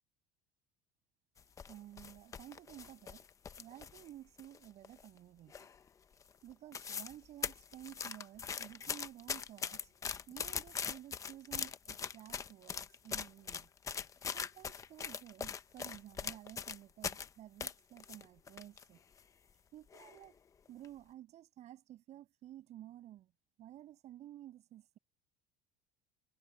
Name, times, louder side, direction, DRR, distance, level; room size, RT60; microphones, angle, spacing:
sound 1, 1.4-4.1 4.4-5.2 5.5-5.9 6.2-6.3 6.5-7.2 7.4-17.3 17.6-18.8 19.2-19.3 19.9-20.3 20.7-20.9, left 6 dB, 15° left, 0.7 m, -41 dB
voice 1, 1.7-3.2 3.6-5.7 6.4-9.9 10.3-13.7 14.3-19.0 19.7-20.3 20.7-23.3 23.6-25.0, right 13 dB, 35° right, 6.4 m, -53 dB
cardioid pair, 165°, 19 cm